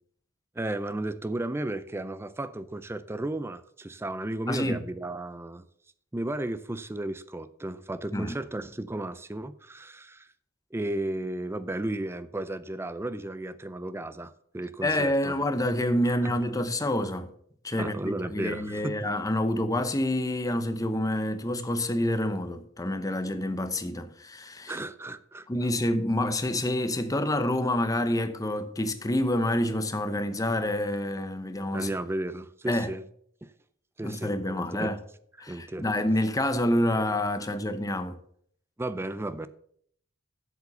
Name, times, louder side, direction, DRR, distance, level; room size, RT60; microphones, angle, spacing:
voice 1, 0.6-5.7 6.1-10.3 10.7-15.4 16.2-16.3 17.8-18.9 24.7-25.5 31.7-33.0 34.0-34.9 35.4-35.9 38.8-39.5, right 1 dB, 10° right, 0.4 m, -34 dB
voice 2, 4.5-4.8 8.1-8.4 14.8-17.3 17.6-24.8 25.5-31.9 32.7-32.9 34.0-35.0 35.4-38.2, left 1 dB, 15° left, 0.8 m, -28 dB
8.1 x 7.2 x 6.8 m
head